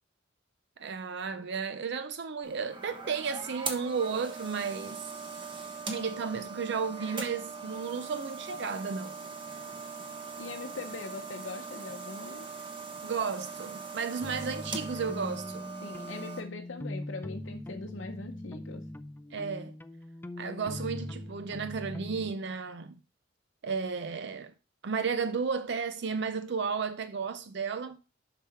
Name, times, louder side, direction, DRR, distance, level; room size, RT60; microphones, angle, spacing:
voice 1, 0.8-5.0 5.9-9.2 13.0-15.7 19.3-19.7 20.4-23.0 23.6-24.5 24.8-28.0, right 5 dB, 60° right, 0.5 m, -33 dB
sound 1, 2.4-16.4, right 4 dB, 25° right, 1.2 m, -41 dB
voice 2, 10.4-12.5 15.8-18.9, left 3 dB, 80° left, 0.7 m, -41 dB
sound 2, 14.2-22.3, left 1 dB, 10° left, 0.4 m, -41 dB
7.1 x 5.9 x 4.4 m
head